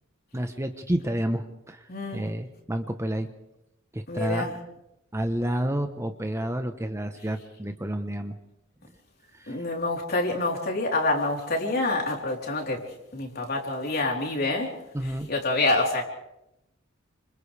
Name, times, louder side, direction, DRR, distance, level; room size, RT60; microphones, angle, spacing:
voice 1, 0.3-3.3 3.9-4.5 5.1-8.4 9.3-9.6 14.9-15.3, right 1 dB, 15° right, 1.0 m, -30 dB
voice 2, 1.9-2.2 4.1-4.6 9.5-12.9 13.1-14.8 15.0-16.0, left 2 dB, 50° left, 3.8 m, -27 dB
29.5 x 26.5 x 3.4 m
head